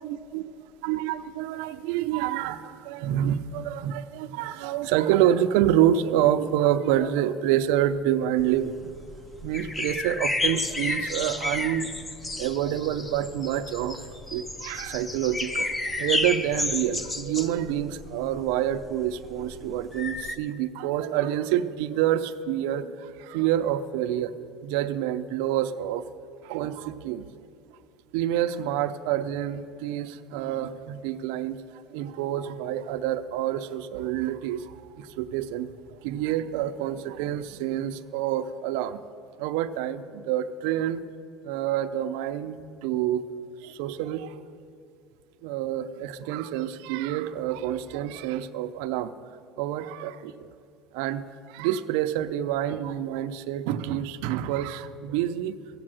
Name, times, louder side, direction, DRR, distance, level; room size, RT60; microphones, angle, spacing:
voice 1, 0.0-0.4 0.8-8.9 9.4-11.9 12.4-24.3 24.6-26.0 26.4-27.3 28.1-39.0 39.4-41.0 41.4-43.3 43.6-44.4 45.4-49.1 49.6-50.5 50.9-55.5, right 11 dB, 80° right, 9 dB, 0.5 m, -27 dB
sound 1, 8.4-20.4, left 2 dB, 10° left, 0.6 m, -32 dB
14.5 x 8.7 x 7.6 m, 2.5 s
cardioid pair, 170°, 0 cm